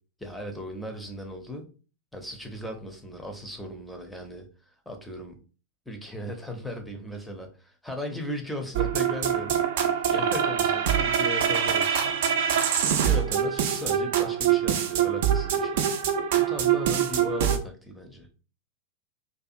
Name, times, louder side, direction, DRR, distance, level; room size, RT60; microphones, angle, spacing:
voice 1, 0.2-1.7 2.1-4.5 4.9-5.4 5.9-15.9 16.3-18.3, left 1 dB, 5° left, 3 dB, 0.5 m, -37 dB
sound 1, 8.7-17.6, right 9 dB, 55° right, 0.3 m, -24 dB
2.4 x 2.4 x 2.5 m, 0.36 s
figure-of-eight pair, 90°, 0 cm